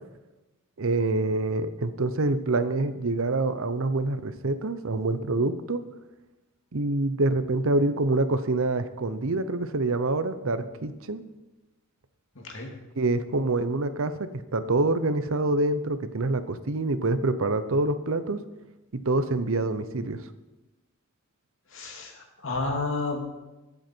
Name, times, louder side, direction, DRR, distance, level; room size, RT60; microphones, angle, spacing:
voice 1, 0.8-5.8 6.7-11.2 13.0-18.4 18.9-20.2, right 2 dB, 65° right, 12 dB, 0.8 m, -26 dB
voice 2, 12.3-12.7 21.7-23.2, left 3 dB, 60° left, 1 dB, 2.5 m, -31 dB
21.0 x 7.9 x 4.5 m, 1.0 s
head